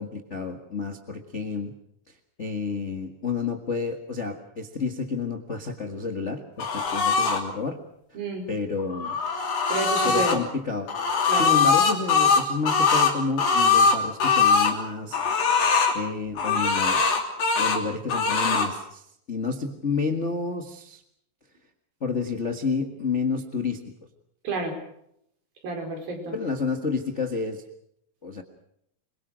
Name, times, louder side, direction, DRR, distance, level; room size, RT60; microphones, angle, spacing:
voice 1, 0.0-1.7 2.4-7.8 8.5-9.2 10.0-10.9 11.3-15.5 15.9-17.0 17.6-21.0 22.0-23.8 26.3-27.6 28.2-28.4, left 4 dB, 40° left, 4 dB, 0.9 m, -30 dB
sound 1, 6.6-7.4 8.8-10.4 10.9-14.7 15.1-16.0 16.4-17.8 18.1-18.7, left 5 dB, 70° left, 4.8 m, -21 dB
voice 2, 8.1-8.5 9.7-10.4 11.3-11.5 24.4-24.8 25.6-26.3, right 2 dB, 75° right, 3 dB, 6.7 m, -29 dB
26.5 x 23.0 x 6.3 m, 0.73 s
omnidirectional pair, 4.2 m